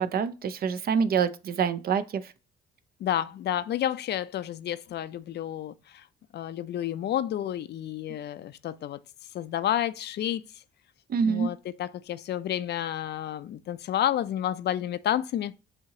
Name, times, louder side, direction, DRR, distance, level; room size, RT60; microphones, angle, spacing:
voice 1, 0.0-2.3 11.1-11.5, right 6 dB, 50° right, 0.5 m, -26 dB
voice 2, 3.0-6.1 6.3-9.0 9.3-10.6 11.2-15.5, left 11 dB, 60° left, 0.4 m, -30 dB
6.8 x 2.8 x 2.7 m
cardioid pair, 90°, 20 cm